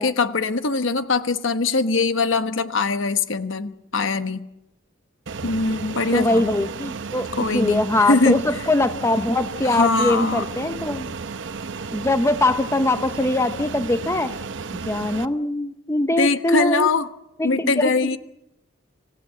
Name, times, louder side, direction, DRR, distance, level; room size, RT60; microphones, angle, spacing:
voice 1, 0.0-4.5 5.4-6.5 7.4-8.4 9.6-10.4 16.2-17.1 17.4-18.2, left 3 dB, 70° left, 10 dB, 1.1 m, -22 dB
Fixed-wing aircraft airplane, 5.3-15.3, right 4 dB, 65° right, 0.8 m, -33 dB
voice 2, 6.1-11.1 11.9-14.3 14.9-16.9 17.4-17.9, left 2 dB, 15° left, 10 dB, 0.8 m, -22 dB
26.5 x 16.0 x 7.6 m, 0.88 s
head